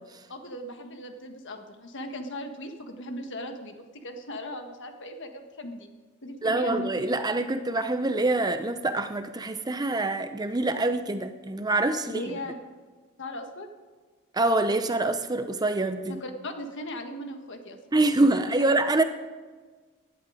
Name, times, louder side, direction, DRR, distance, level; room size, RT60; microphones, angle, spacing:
voice 1, 0.3-5.9 6.2-6.9 12.0-12.5 13.2-13.7 16.1-17.8, left 1 dB, 55° left, 6 dB, 1.5 m, -38 dB
voice 2, 6.4-12.2 14.3-16.2 17.9-19.0, right 2 dB, 20° right, 9 dB, 0.6 m, -25 dB
17.0 x 11.0 x 5.0 m, 1.4 s
head